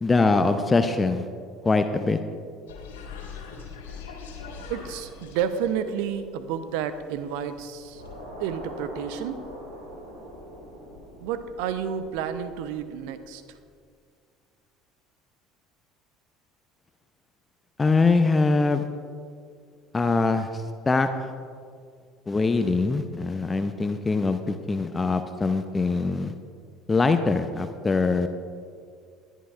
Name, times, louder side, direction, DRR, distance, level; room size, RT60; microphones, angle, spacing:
voice 1, 0.0-1.2 1.6-2.2 17.8-18.8 19.9-21.1 22.3-26.3 26.9-28.3, left 3 dB, 20° left, 8 dB, 0.6 m, -23 dB
sound 1, 2.7-8.1, left 5 dB, 70° left, 2.0 m, -43 dB
voice 2, 4.7-8.0 8.4-9.4 11.2-13.4, right 8 dB, 60° right, 11 dB, 0.7 m, -30 dB
sound 2, 7.9-13.2, equal, 85° right, 2.2 m, -43 dB
21.0 x 11.0 x 2.4 m, 2.2 s
figure-of-eight pair, 60°, 0 cm